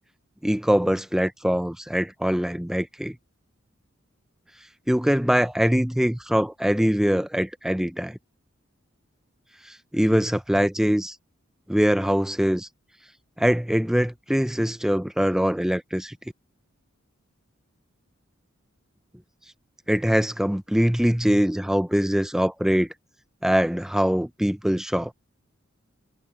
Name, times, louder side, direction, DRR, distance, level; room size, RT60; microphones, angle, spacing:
voice 1, 0.4-3.2 4.9-8.2 9.6-11.2 11.7-12.7 13.4-16.2 19.9-22.9 23.4-25.1, equal, ahead, 0.5 m, -23 dB
head